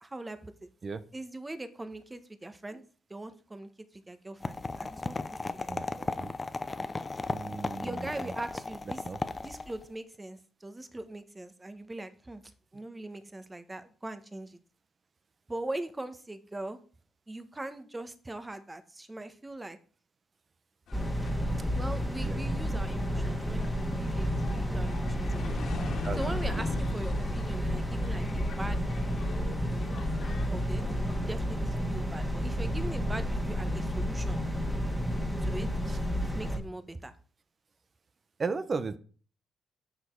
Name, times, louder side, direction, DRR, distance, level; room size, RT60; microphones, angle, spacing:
voice 1, 0.0-0.7 1.1-2.8 3.1-5.2 5.5-5.9 7.8-9.0 9.4-12.4 12.7-14.6 15.5-16.8 17.3-19.8 21.7-25.6 26.2-29.5 30.5-34.4 35.4-37.1, right 2 dB, 15° right, 11 dB, 1.1 m, -41 dB
sound 1, 4.4-9.9, left 3 dB, 25° left, 0.7 m, -36 dB
voice 2, 5.7-6.3 7.3-8.3 9.0-9.2 22.2-22.4 25.6-25.7 26.0-26.6 35.9-36.0 38.4-39.0, right 4 dB, 35° right, 13 dB, 0.8 m, -36 dB
sound 2, 20.9-31.2, left 3 dB, 65° left, 1.9 m, -43 dB
sound 3, 20.9-36.6, equal, ahead, 2.1 m, -31 dB
7.8 x 6.4 x 4.6 m, 0.40 s
cardioid pair, 90°, 0 cm